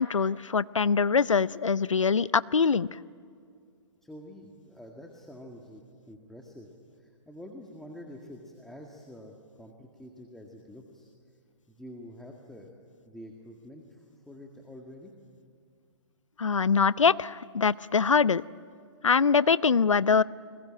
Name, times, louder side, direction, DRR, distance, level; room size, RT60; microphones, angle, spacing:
voice 1, 0.0-2.9 16.4-18.4 19.0-20.2, left 5 dB, 90° left, 20 dB, 0.6 m, -23 dB
voice 2, 4.0-6.7 7.0-11.1 11.7-12.7 13.1-15.1, equal, ahead, 0 dB, 1.9 m, -47 dB
28.5 x 21.5 x 8.8 m, 2.2 s
hypercardioid pair, 130°, 16 cm